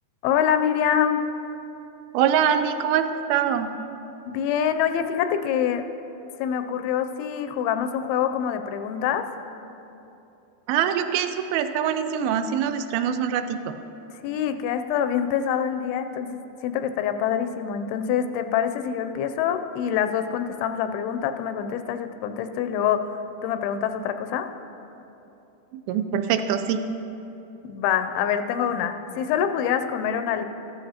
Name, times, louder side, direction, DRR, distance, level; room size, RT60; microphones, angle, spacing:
voice 1, 0.2-1.2 4.3-5.9 6.4-9.3 14.2-24.5 27.6-30.5, left 8 dB, 85° left, 9 dB, 2.5 m, -25 dB
voice 2, 2.1-3.7 10.7-13.8 25.7-26.8, right 8 dB, 85° right, 9 dB, 2.3 m, -24 dB
14.0 x 13.0 x 2.8 m, 2.9 s
omnidirectional pair, 4.3 m